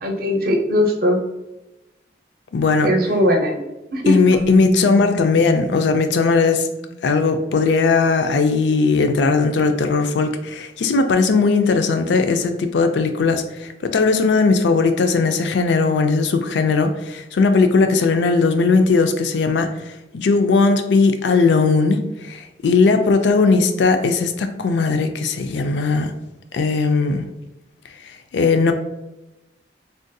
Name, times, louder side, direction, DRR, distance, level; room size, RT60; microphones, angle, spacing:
voice 1, 0.0-1.2 2.8-3.6 3.9-4.1, equal, 50° right, 2 dB, 0.6 m, -19 dB
voice 2, 2.5-2.9 4.1-6.7 7.0-26.1 26.5-27.3 28.0-28.7, left 4 dB, 75° left, 8 dB, 0.4 m, -18 dB
Keyboard (musical), 4.3-7.6, right 2 dB, 5° right, 0.4 m, -33 dB
3.6 x 2.2 x 2.6 m, 0.96 s
head